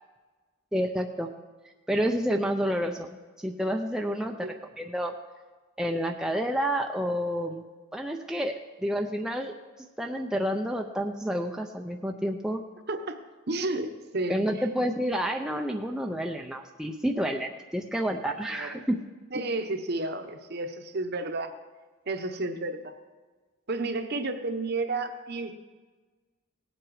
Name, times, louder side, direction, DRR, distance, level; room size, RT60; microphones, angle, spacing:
voice 1, 0.7-1.3 1.9-5.1 5.8-7.7 7.9-9.5 10.0-12.6 14.3-19.0, equal, 5° right, 2 dB, 0.5 m, -29 dB
voice 2, 12.9-13.2 13.5-14.6 18.5-18.8 19.3-21.5 22.1-22.9 23.7-25.5, right 2 dB, 50° right, 7 dB, 0.9 m, -31 dB
18.0 x 7.8 x 4.8 m, 1.3 s
head